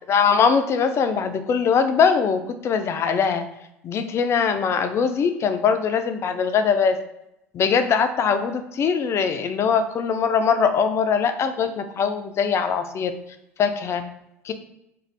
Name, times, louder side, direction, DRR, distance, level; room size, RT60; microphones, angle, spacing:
voice 1, 0.1-3.5 3.8-7.0 7.5-13.1 13.6-14.0 14.4-14.5, left 6 dB, 35° left, 8 dB, 0.4 m, -21 dB
2.5 x 2.3 x 3.2 m, 0.84 s
figure-of-eight pair, 65°, 7 cm